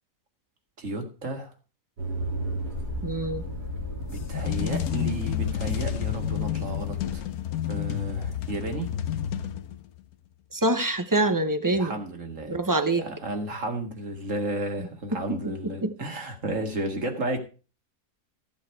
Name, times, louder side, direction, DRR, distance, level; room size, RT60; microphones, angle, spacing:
voice 1, 0.8-1.5 4.1-7.3 7.7-8.9 11.7-12.6 13.0-17.4, right 2 dB, 50° right, 5 dB, 2.4 m, -33 dB
sound 1, 2.0-7.1, equal, 90° right, 4.1 m, -34 dB
voice 2, 3.0-3.4 10.5-11.9 12.5-13.0 15.1-15.5 15.8-15.9, right 2 dB, 15° right, 10 dB, 0.7 m, -25 dB
sound 2, 4.0-10.0, left 11 dB, 70° left, 1.3 m, -30 dB
14.5 x 8.4 x 4.6 m, 0.34 s
omnidirectional pair, 1.7 m